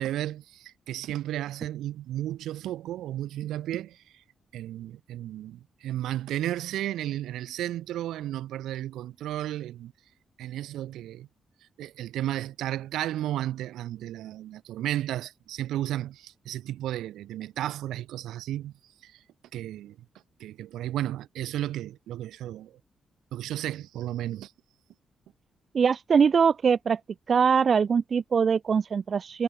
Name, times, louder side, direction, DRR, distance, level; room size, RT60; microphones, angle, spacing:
voice 1, 0.0-4.2 4.5-9.9 10.4-11.3 11.8-18.7 19.0-19.2 19.5-20.0 20.4-22.8 23.3-24.5, right 13 dB, 75° right, 1.9 m, -33 dB
voice 2, 25.7-27.0 27.3-29.4, right 6 dB, 55° right, 0.8 m, -22 dB
hypercardioid pair, 45°, 0 cm